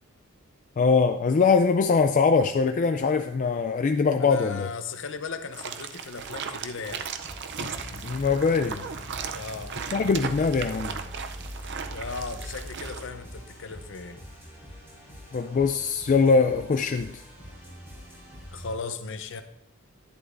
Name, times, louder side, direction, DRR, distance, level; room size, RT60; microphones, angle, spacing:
voice 1, 0.8-4.7 7.6-7.8 8.0-8.8 9.9-10.9 15.3-17.2, left 4 dB, 35° left, 7 dB, 0.3 m, -22 dB
voice 2, 4.2-7.1 9.3-9.7 11.9-14.2 18.5-19.4, left 4 dB, 60° left, 9 dB, 0.7 m, -37 dB
sound 1, 5.5-13.0, right 7 dB, 55° right, 0.5 m, -37 dB
sound 2, 7.0-18.7, equal, 10° right, 4.2 m, -45 dB
sound 3, 7.7-12.7, equal, 30° right, 1.5 m, -42 dB
11.0 x 10.0 x 2.6 m, 0.73 s
head